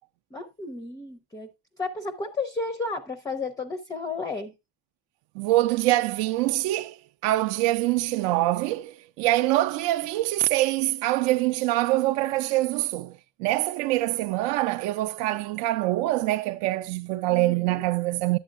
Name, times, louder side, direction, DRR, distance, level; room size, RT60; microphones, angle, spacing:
voice 1, 0.3-1.5 1.8-4.5 17.3-17.8, left 3 dB, 10° left, 0.4 m, -33 dB
voice 2, 5.4-7.0 7.2-13.1 13.4-18.4, right 17 dB, 80° right, 0.6 m, -24 dB
11.0 x 8.2 x 2.4 m
cardioid pair, 170°, 40 cm